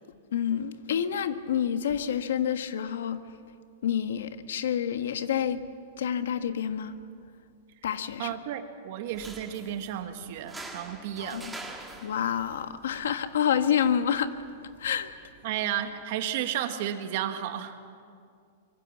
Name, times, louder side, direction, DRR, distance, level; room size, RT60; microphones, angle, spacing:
voice 1, 0.3-3.2 3.8-5.6 6.0-7.0 7.8-8.4 11.2-11.5 12.0-14.3 14.8-15.1, left 8 dB, 80° left, 9 dB, 1.4 m, -28 dB
voice 2, 8.2-11.5 15.4-17.8, right 10 dB, 45° right, 7 dB, 1.6 m, -33 dB
sound 1, 9.0-16.0, right 2 dB, 5° right, 1.7 m, -47 dB
25.5 x 23.0 x 7.3 m, 2.3 s
supercardioid pair, 175°, 0 cm